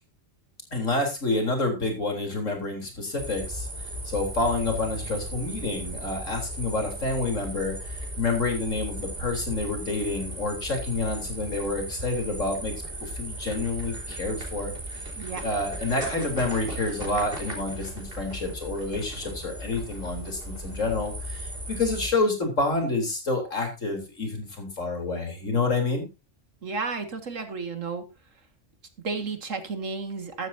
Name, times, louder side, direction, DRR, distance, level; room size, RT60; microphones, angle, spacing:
voice 1, 0.7-3.7 4.0-12.7 13.0-14.7 15.4-26.1, left 3 dB, 80° left, 3 dB, 4.2 m, -28 dB
sound 1, 3.2-22.1, right 1 dB, 45° right, 4.1 m, -36 dB
voice 2, 26.6-28.0 29.0-30.5, right 4 dB, 75° right, 7 dB, 2.3 m, -32 dB
14.5 x 12.5 x 2.8 m, 0.27 s
omnidirectional pair, 1.3 m